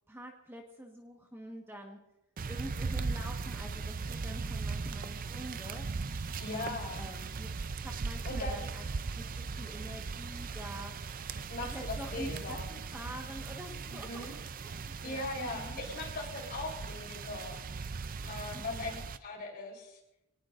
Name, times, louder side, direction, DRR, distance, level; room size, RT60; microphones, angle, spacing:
voice 1, 0.1-2.0 2.5-5.8 6.5-7.5 7.8-8.9 9.1-10.9 11.6-15.8 18.5-19.0, equal, 10° right, 1 dB, 1.4 m, -46 dB
sound 1, 2.4-19.2, right 4 dB, 40° right, 0.5 m, -38 dB
voice 2, 6.4-7.0 8.3-8.7 11.5-12.6 13.9-14.3 15.0-17.6 18.2-18.9 19.2-20.0, left 2 dB, 45° left, 0 dB, 3.9 m, -39 dB
24.0 x 18.5 x 2.6 m, 0.94 s
head